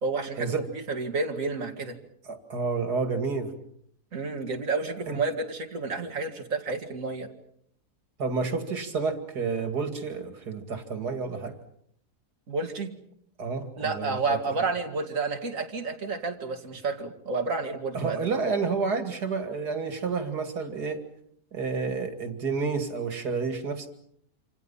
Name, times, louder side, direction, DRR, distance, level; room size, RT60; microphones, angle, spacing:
voice 1, 0.0-1.9 4.1-7.3 12.5-12.9 13.8-18.3, right 3 dB, 55° right, 3 dB, 2.8 m, -30 dB
voice 2, 2.2-3.5 5.1-5.2 8.2-11.6 13.4-14.4 17.9-21.0 21.5-23.9, right 4 dB, 85° right, 7 dB, 2.9 m, -30 dB
27.5 x 27.0 x 5.7 m, 0.68 s
omnidirectional pair, 1.7 m